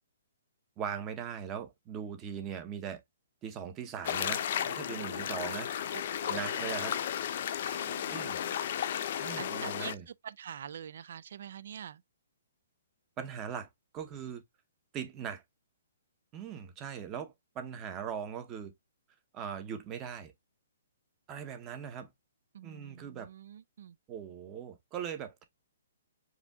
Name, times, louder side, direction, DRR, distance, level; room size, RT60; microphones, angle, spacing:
voice 1, 0.8-3.0 3.4-5.7 6.3-7.0 8.1-8.4 9.1-10.0 13.2-14.4 14.9-15.4 16.3-18.7 19.3-20.3 21.3-22.1 22.6-23.3 24.1-25.4, right 8 dB, 20° right, 0.8 m, -40 dB
sound 1, 4.0-9.9, left 9 dB, 50° left, 0.6 m, -34 dB
voice 2, 5.9-6.7 7.7-8.6 9.4-12.0 22.5-24.0, right 8 dB, 60° right, 0.4 m, -46 dB
4.9 x 2.7 x 3.5 m
hypercardioid pair, 160°, 0 cm